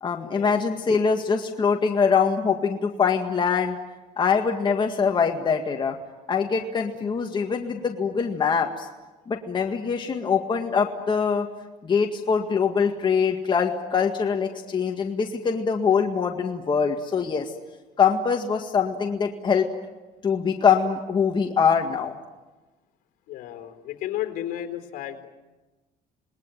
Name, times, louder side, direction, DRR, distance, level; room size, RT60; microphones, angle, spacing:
voice 1, 0.0-3.8 4.2-6.0 6.3-8.9 9.3-11.5 11.8-17.5 18.0-19.7 20.2-22.2, left 6 dB, 30° left, 3 dB, 1.9 m, -23 dB
voice 2, 23.3-25.3, left 12 dB, 70° left, 7 dB, 3.8 m, -33 dB
27.5 x 20.0 x 9.2 m, 1.2 s
cardioid pair, 120°, 15 cm